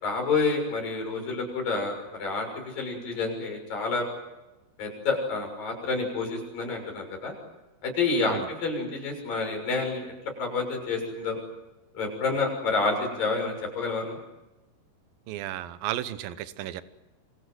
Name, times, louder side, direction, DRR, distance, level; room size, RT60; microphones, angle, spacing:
voice 1, 0.0-4.1 4.8-7.3 7.8-10.1 10.4-11.4 11.9-14.2, left 3 dB, 55° left, 2 dB, 8.3 m, -29 dB
voice 2, 15.3-16.8, right 13 dB, 70° right, 13 dB, 2.7 m, -33 dB
26.5 x 26.0 x 7.9 m, 1.0 s
omnidirectional pair, 4.7 m